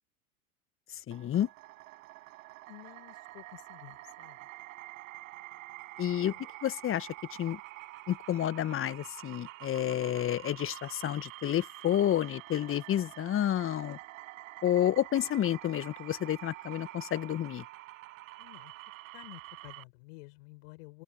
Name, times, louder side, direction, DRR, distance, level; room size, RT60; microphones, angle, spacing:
voice 1, 1.1-1.5 6.0-6.3 6.6-7.1 7.4-7.6 8.1-14.0 14.6-17.6, left 11 dB, 30° left, 1.6 m, -30 dB
sound 1, 1.1-19.8, right 19 dB, 60° right, 7.5 m, -47 dB
voice 2, 2.7-4.4 6.0-6.4 18.4-18.7 19.1-21.0, left 25 dB, 55° left, 7.5 m, -51 dB
open air
figure-of-eight pair, 90°, 45 cm